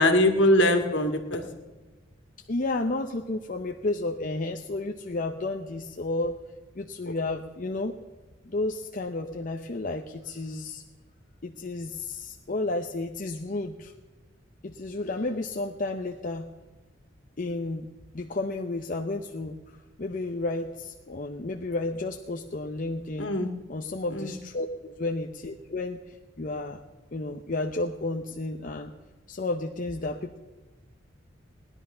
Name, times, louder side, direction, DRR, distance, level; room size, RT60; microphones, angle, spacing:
voice 1, 0.0-1.4 23.2-23.5 24.1-24.3, left 1 dB, 70° left, 5 dB, 1.9 m, -22 dB
voice 2, 2.5-6.3 6.8-7.9 8.5-10.8 11.4-13.9 14.6-16.5 17.4-17.9 18.1-19.6 20.0-23.3 23.7-26.8 27.1-28.9 29.3-30.4, left 2 dB, 45° left, 4 dB, 0.7 m, -32 dB
18.5 x 11.0 x 5.6 m, 1.3 s
head